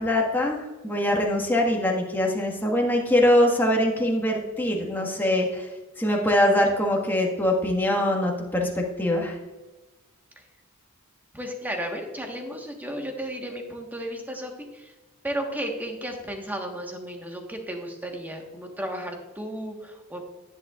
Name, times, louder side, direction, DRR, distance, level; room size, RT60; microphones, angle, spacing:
voice 1, 0.0-5.7 6.0-9.4, left 1 dB, 10° left, 0 dB, 1.6 m, -23 dB
voice 2, 11.3-14.9 15.2-20.3, right 1 dB, 10° right, 2 dB, 1.3 m, -34 dB
11.0 x 10.0 x 2.4 m, 1.2 s
head